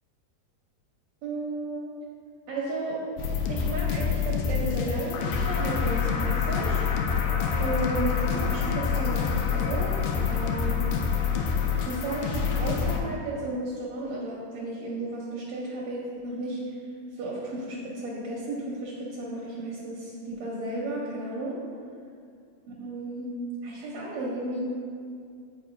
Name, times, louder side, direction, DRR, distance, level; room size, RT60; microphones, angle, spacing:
voice 1, 1.2-1.9 2.5-3.0 3.5-6.8 7.6-10.9 11.9-16.6 17.2-21.6 22.8-23.3 23.6-24.6, right 2 dB, 80° right, -4 dB, 1.6 m, -33 dB
sound 1, 3.2-13.0, left 6 dB, 80° left, 1.9 m, -27 dB
9.7 x 4.3 x 2.5 m, 2.3 s
omnidirectional pair, 4.0 m